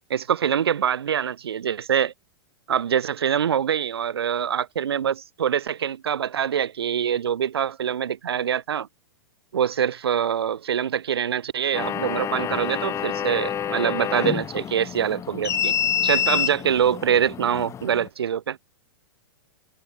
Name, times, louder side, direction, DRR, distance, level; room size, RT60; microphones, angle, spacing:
voice 1, 0.1-2.1 2.7-8.9 9.5-15.7 16.0-18.6, right 8 dB, 85° right, 5.7 m, -24 dB
sound 1, 11.7-18.1, left 9 dB, 25° left, 2.9 m, -27 dB
hypercardioid pair, 130°, 13 cm